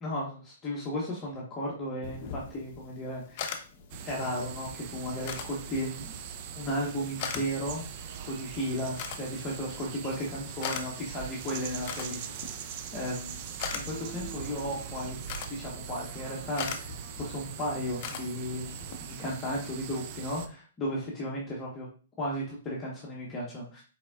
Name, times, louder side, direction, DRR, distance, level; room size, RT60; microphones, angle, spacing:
voice 1, 0.0-3.5 4.0-6.2 6.5-7.8 8.3-12.3 12.9-13.4 13.7-15.2 15.5-21.9 22.2-23.8, equal, 20° left, -4 dB, 1.1 m, -35 dB
sound 1, 2.0-18.9, left 6 dB, 40° left, 0.7 m, -42 dB
sound 2, 3.9-20.5, right 8 dB, 40° right, 0.5 m, -41 dB
4.3 x 4.0 x 2.4 m, 0.37 s
hypercardioid pair, 140°, 0 cm